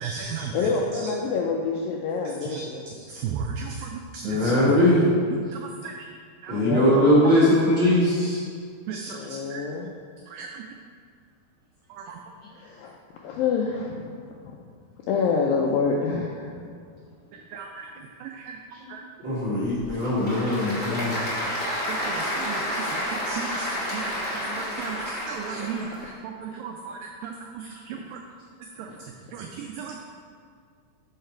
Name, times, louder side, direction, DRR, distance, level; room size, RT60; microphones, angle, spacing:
voice 1, 0.0-0.5 2.5-2.6 3.2-3.9 4.1-4.6 5.8-5.9 6.4-6.6 8.9-9.2 9.5-9.6 10.3-10.5 17.5-17.9 18.2-18.3 18.9-19.0 21.7-25.0 25.3-25.9 26.4-27.3 29.3-30.0, right 6 dB, 90° right, 2 dB, 2.0 m, -34 dB
voice 2, 0.5-2.8 6.5-7.0 9.1-9.9 12.5-12.9 13.2-14.6 15.1-16.5 27.9-28.0 28.9-29.0, left 5 dB, 85° left, -1 dB, 2.0 m, -27 dB
voice 3, 4.2-5.0 6.5-8.4 19.2-21.1, left 1 dB, 55° right, -10 dB, 1.5 m, -20 dB
Applause / Crowd, 19.6-26.1, equal, 70° left, 0.6 m, -30 dB
6.5 x 5.6 x 4.4 m, 2.1 s
omnidirectional pair, 4.6 m